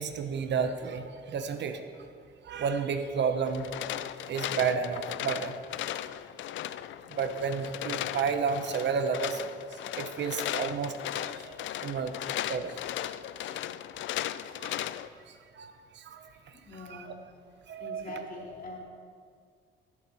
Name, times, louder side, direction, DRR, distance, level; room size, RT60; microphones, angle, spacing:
voice 1, 0.0-1.8 2.4-3.7 4.3-5.5 7.1-9.4 9.9-12.8 14.6-14.9 15.3-16.3 16.8-17.1 17.7-18.3, right 6 dB, 60° right, 8 dB, 0.9 m, -32 dB
sound 1, 3.5-15.1, left 12 dB, 75° left, 0.4 m, -36 dB
voice 2, 16.5-17.2 17.8-18.8, left 2 dB, 45° left, -1 dB, 2.5 m, -43 dB
16.0 x 7.4 x 4.2 m, 2.1 s
cardioid pair, 90°, 20 cm